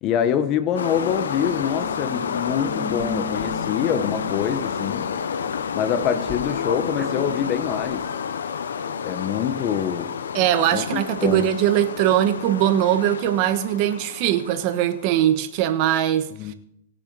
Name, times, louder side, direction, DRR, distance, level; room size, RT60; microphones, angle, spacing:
voice 1, 0.0-5.1 5.7-8.1 9.0-10.2 10.7-11.4 16.4-16.5, left 8 dB, 35° left, 1.1 m, -25 dB
night ambience, 0.8-15.2, left 7 dB, 90° left, 0.8 m, -30 dB
sound 1, 1.0-8.0, right 1 dB, 10° right, 1.4 m, -39 dB
voice 2, 10.3-16.3, right 11 dB, 45° right, 1.2 m, -21 dB
20.5 x 6.8 x 4.1 m
hypercardioid pair, 135°, 0 cm